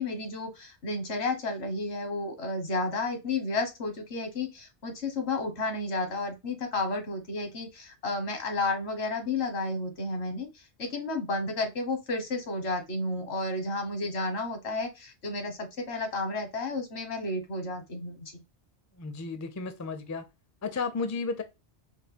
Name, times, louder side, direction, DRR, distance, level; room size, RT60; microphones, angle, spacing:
voice 1, 0.0-18.4, left 2 dB, 80° left, 1.4 m, -32 dB
voice 2, 19.0-20.2 20.6-21.4, left 4 dB, 25° left, 0.4 m, -33 dB
4.2 x 2.7 x 3.4 m
omnidirectional pair, 1.1 m